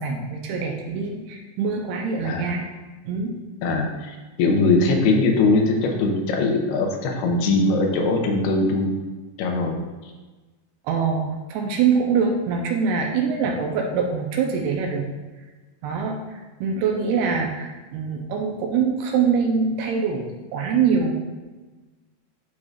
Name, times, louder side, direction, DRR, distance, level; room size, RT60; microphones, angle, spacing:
voice 1, 0.0-2.7 3.0-3.4 10.8-15.1 15.8-21.1, right 5 dB, 80° right, 1 dB, 2.5 m, -24 dB
voice 2, 2.2-2.6 3.6-8.9 9.4-10.1 17.3-17.4, left 3 dB, 75° left, 2 dB, 2.8 m, -21 dB
11.5 x 4.9 x 2.4 m, 1.2 s
omnidirectional pair, 4.8 m